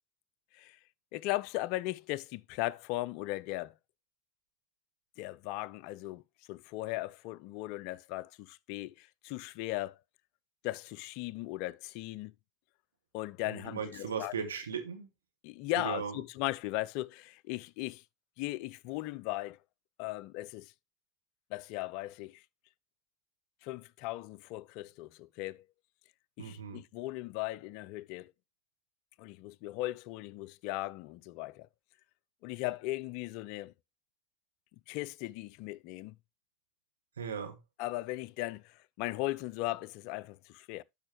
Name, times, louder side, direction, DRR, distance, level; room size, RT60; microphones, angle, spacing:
voice 1, 1.1-3.7 5.2-6.2 6.5-10.0 10.6-12.3 13.1-14.3 15.4-18.0 18.4-19.6 20.0-20.7 21.5-22.4 23.6-25.6 26.4-28.3 29.2-31.7 32.4-33.7 34.9-36.1 37.8-40.8, left 18 dB, 60° left, 0.4 m, -37 dB
voice 2, 13.5-15.1 15.8-16.2 26.4-26.8 37.2-37.6, right 6 dB, 85° right, 1.5 m, -37 dB
12.5 x 5.1 x 2.9 m
hypercardioid pair, 80°, 0 cm